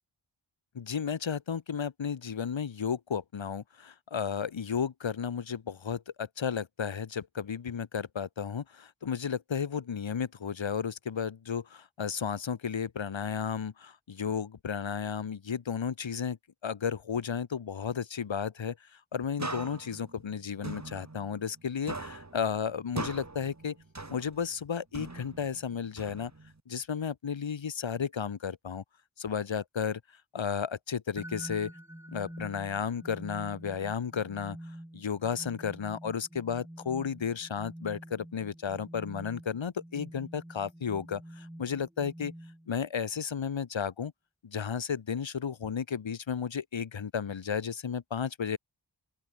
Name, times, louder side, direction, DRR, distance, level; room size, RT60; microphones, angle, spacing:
voice 1, 0.7-16.4 16.6-23.8 24.1-26.3 26.7-28.8 29.2-30.0 30.3-31.7 32.1-34.6 34.9-42.3 42.7-44.1 44.4-48.6, left 7 dB, 70° left, 1.0 m, -33 dB
sound 1, 19.4-21.6 21.9-24.6 24.9-26.6, right 3 dB, 35° right, 2.2 m, -41 dB
sound 2, 31.2-42.9, right 1 dB, 5° right, 1.6 m, -47 dB
open air
wide cardioid pair, 55°, 47 cm